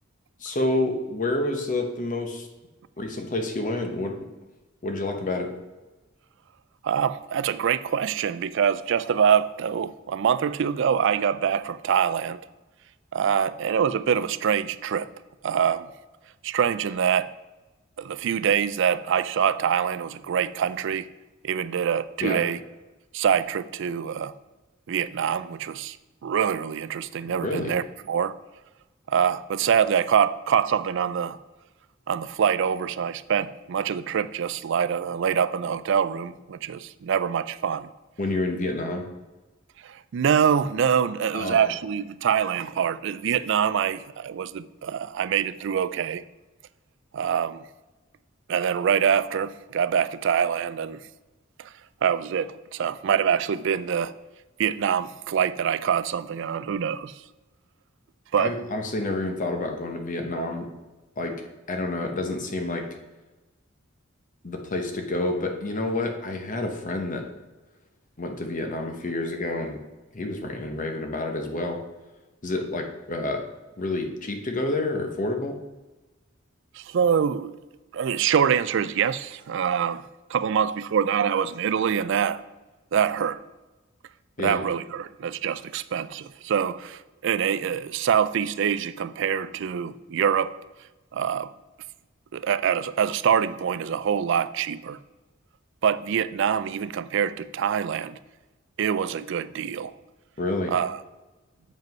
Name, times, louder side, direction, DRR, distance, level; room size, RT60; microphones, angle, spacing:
voice 1, 0.4-2.5 3.0-4.2 4.8-5.5 22.2-22.4 27.4-27.7 38.2-39.0 41.3-41.7 58.4-60.7 61.2-61.4 61.7-62.9 64.4-67.2 68.2-69.8 70.1-71.8 72.4-73.5 73.8-75.6 84.4-84.6 100.4-100.7, left 2 dB, 40° left, 4 dB, 0.9 m, -28 dB
voice 2, 6.8-12.4 13.1-15.1 15.4-15.9 16.4-17.3 18.0-21.1 21.4-22.6 23.1-24.3 24.9-26.0 26.2-28.3 29.1-31.4 32.1-37.9 39.8-46.2 47.1-47.6 48.5-51.0 51.6-51.7 52.0-54.1 54.6-57.1 58.3-58.5 76.7-77.5 77.9-82.4 82.9-83.4 84.4-90.5 91.1-91.5 92.3-95.0 95.8-98.2 98.8-99.9 100.7-101.0, right 8 dB, 65° right, 15 dB, 0.4 m, -25 dB
7.7 x 5.2 x 5.2 m, 1.1 s
head